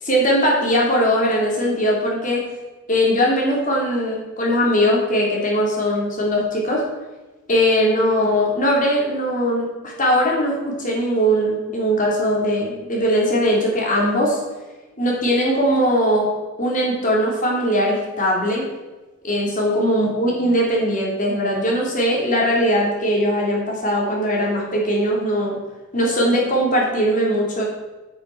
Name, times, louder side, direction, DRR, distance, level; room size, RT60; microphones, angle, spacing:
voice 1, 0.0-2.4 2.9-6.8 7.5-14.4 15.0-16.3 16.6-18.7 19.2-25.6 25.9-27.6, equal, 40° left, -2 dB, 3.2 m, -20 dB
9.6 x 8.7 x 6.0 m, 1.2 s
head